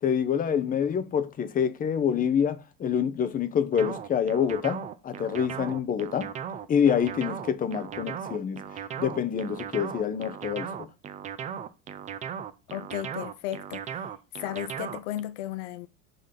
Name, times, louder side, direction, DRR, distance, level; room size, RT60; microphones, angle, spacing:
voice 1, 0.0-6.3 6.7-8.6 9.0-10.9, left 8 dB, 20° left, 0.6 m, -26 dB
sound 1, 3.7-15.2, right 8 dB, 20° right, 0.4 m, -37 dB
voice 2, 12.7-14.1 14.4-15.9, left 13 dB, 65° left, 0.7 m, -35 dB
5.0 x 3.9 x 5.7 m
supercardioid pair, 125°, 38 cm